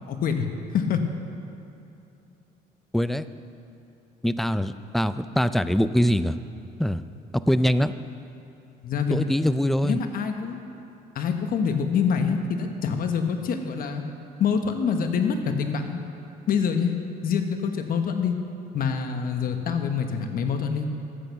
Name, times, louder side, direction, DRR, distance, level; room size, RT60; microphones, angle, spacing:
voice 1, 0.1-0.5 0.7-1.0 8.8-9.2 9.8-10.6 11.1-14.0 14.4-16.0 16.5-16.9 17.2-18.3 18.7-20.9, left 6 dB, 60° left, 6 dB, 1.2 m, -25 dB
voice 2, 2.9-3.3 4.2-6.4 6.8-7.0 7.3-7.9 9.1-10.0, equal, ahead, 13 dB, 0.4 m, -23 dB
13.0 x 8.4 x 6.7 m, 2.9 s
cardioid pair, 110°, 17 cm